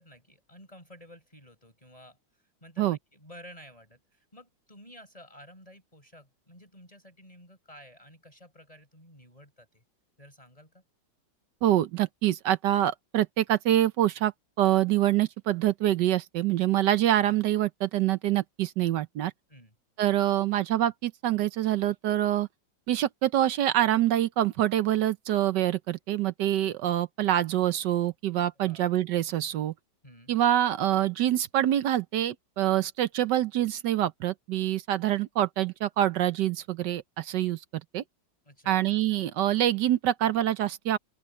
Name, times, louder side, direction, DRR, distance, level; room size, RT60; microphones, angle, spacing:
voice 1, 0.0-2.2 2.6-9.8 10.2-10.8 19.5-19.7 28.5-28.9 30.0-30.4 38.5-38.8, equal, 20° left, 5.7 m, -52 dB
voice 2, 11.6-14.3 14.6-19.3 20.0-22.5 22.9-29.7 30.3-37.6 37.9-38.0 38.7-41.0, right 12 dB, 70° right, 1.3 m, -25 dB
open air
omnidirectional pair, 2.1 m